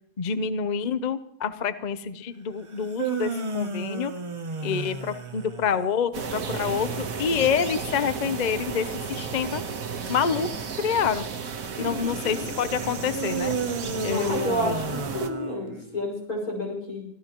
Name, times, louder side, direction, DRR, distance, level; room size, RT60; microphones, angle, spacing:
voice 1, 0.2-4.1 4.6-9.6 10.1-10.5 10.8-11.2 11.8-13.5 14.0-14.5, left 7 dB, 40° left, 11 dB, 0.7 m, -27 dB
sound 1, 2.7-6.0 13.1-16.1, right 3 dB, 30° right, 0.6 m, -32 dB
sound 2, 6.1-15.3, right 6 dB, 70° right, 1.6 m, -33 dB
voice 2, 11.8-12.5 14.1-17.1, left 1 dB, 80° left, -1 dB, 5.9 m, -31 dB
25.0 x 14.5 x 3.0 m, 0.68 s
omnidirectional pair, 1.5 m